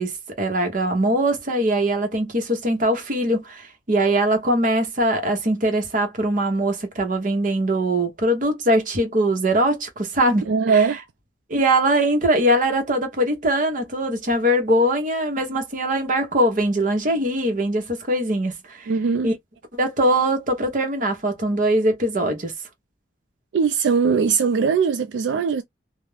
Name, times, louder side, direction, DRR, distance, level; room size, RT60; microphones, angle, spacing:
voice 1, 0.0-10.9 11.5-18.9 19.2-19.3 19.8-22.5, right 1 dB, 50° right, 0.8 m, -22 dB
voice 2, 10.5-11.0 18.9-19.3 23.5-25.6, right 5 dB, 80° right, 0.3 m, -20 dB
2.4 x 2.0 x 3.1 m
head